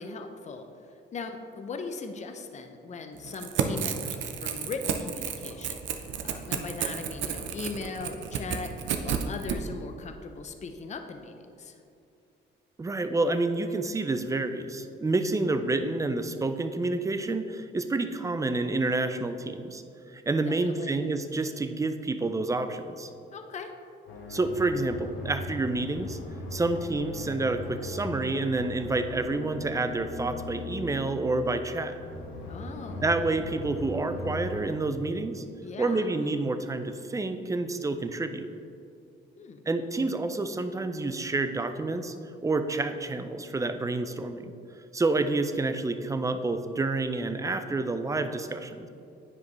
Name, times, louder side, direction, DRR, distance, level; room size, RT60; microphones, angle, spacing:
voice 1, 0.0-11.8 20.4-20.9 23.3-23.7 32.5-33.0 35.6-36.2 39.4-39.6, left 4 dB, 35° left, 6 dB, 0.6 m, -39 dB
Crackle / Tearing, 3.2-9.6, right 8 dB, 75° right, 0.6 m, -31 dB
voice 2, 12.8-19.8 20.1-23.1 24.3-26.2 26.5-31.9 33.0-35.4 35.8-38.5 39.7-42.1 42.4-44.5 44.9-48.9, right 2 dB, 15° right, 9 dB, 0.4 m, -29 dB
sound 1, 24.1-34.7, left 2 dB, 85° left, 1.1 m, -39 dB
9.6 x 5.0 x 3.1 m, 2.6 s
cardioid pair, 90°, 20 cm